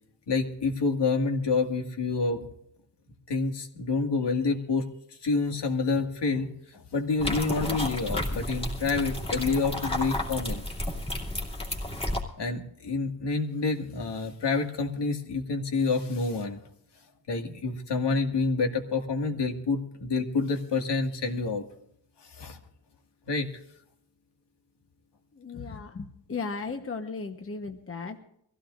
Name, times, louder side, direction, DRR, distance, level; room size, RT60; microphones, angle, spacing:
voice 1, 0.3-2.5 3.3-4.9 5.2-10.6 12.4-16.6 17.3-21.6 22.3-22.6 23.3-23.5, left 4 dB, 70° left, 3 dB, 2.1 m, -28 dB
sound 1, 7.2-12.2, left 1 dB, 15° left, 2.7 m, -32 dB
voice 2, 25.3-28.2, left 4 dB, 30° left, 5 dB, 1.1 m, -36 dB
24.0 x 16.0 x 2.5 m, 0.71 s
wide cardioid pair, 155°, 42 cm